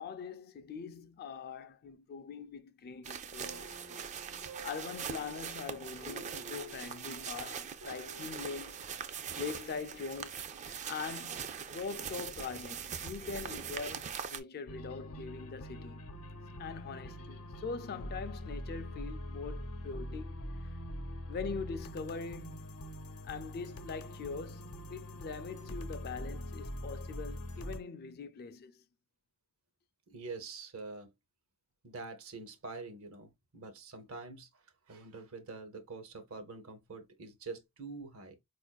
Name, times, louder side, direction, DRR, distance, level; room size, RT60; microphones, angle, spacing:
voice 1, 0.0-4.1 4.4-10.4 10.7-16.0 16.6-20.4 21.3-22.7 23.2-28.8, left 5 dB, 45° left, 0.3 m, -42 dB
sound 1, 3.0-14.4, right 7 dB, 35° right, 0.3 m, -42 dB
sound 2, 3.4-8.4, right 4 dB, 90° right, 1.1 m, -53 dB
sound 3, 14.7-27.8, equal, 85° left, 0.7 m, -43 dB
voice 2, 30.1-31.1 31.8-38.3, right 3 dB, 70° right, 0.7 m, -46 dB
4.4 x 2.4 x 2.2 m
head